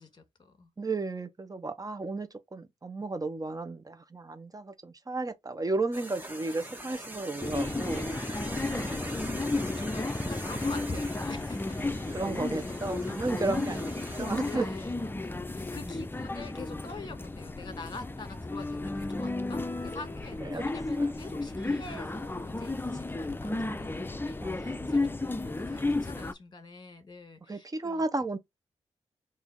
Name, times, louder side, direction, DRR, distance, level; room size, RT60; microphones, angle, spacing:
voice 1, 0.0-0.7 8.8-11.8 13.7-13.9 14.4-28.0, left 3 dB, 35° left, 1.6 m, -45 dB
voice 2, 0.8-8.1 12.1-13.9 14.2-14.7 15.7-15.8 20.4-20.6 21.0-21.1 24.4-24.9 27.5-28.4, right 2 dB, 30° right, 1.0 m, -33 dB
sound 1, 5.9-14.6, right 1 dB, 15° right, 1.6 m, -43 dB
sound 2, 7.4-26.3, left 2 dB, 15° left, 0.6 m, -33 dB
3.4 x 2.8 x 3.8 m
supercardioid pair, 45°, 12 cm